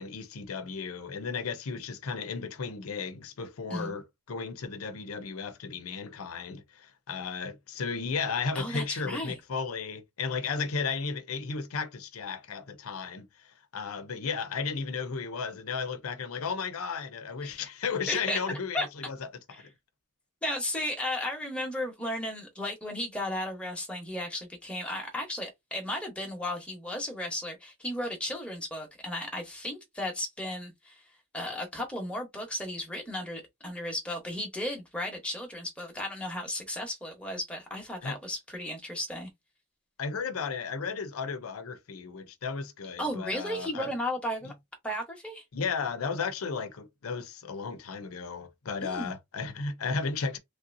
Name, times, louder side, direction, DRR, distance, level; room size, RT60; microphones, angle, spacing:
voice 1, 0.0-13.3 13.7-19.2 19.5-19.6 38.0-38.2 40.0-43.9 45.5-50.4, left 5 dB, 80° left, 0.6 m, -34 dB
voice 2, 8.5-9.4 17.4-17.5 18.1-18.4 18.7-18.9 19.5-19.7 20.4-31.0 31.3-39.3 43.0-44.5 44.8-45.4 48.8-49.1, left 1 dB, 5° left, 1.0 m, -34 dB
3.2 x 2.7 x 2.5 m
head